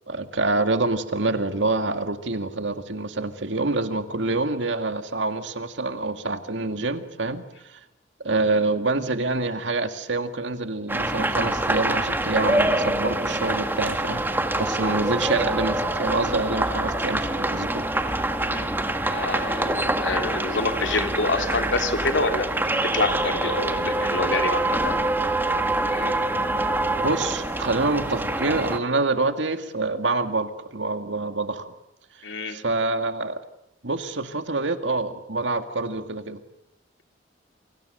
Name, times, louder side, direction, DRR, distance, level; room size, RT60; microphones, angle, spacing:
voice 1, 0.1-7.8 8.2-14.2 14.6-17.8 27.0-31.7 32.5-33.4 33.8-36.4, right 3 dB, 85° right, 8 dB, 2.1 m, -26 dB
sound 1, 10.9-28.8, right 1 dB, 10° right, 1.8 m, -25 dB
voice 2, 19.1-25.1 25.8-26.1 32.2-32.6, left 3 dB, 85° left, 6 dB, 2.8 m, -27 dB
29.0 x 25.5 x 6.7 m, 0.84 s
head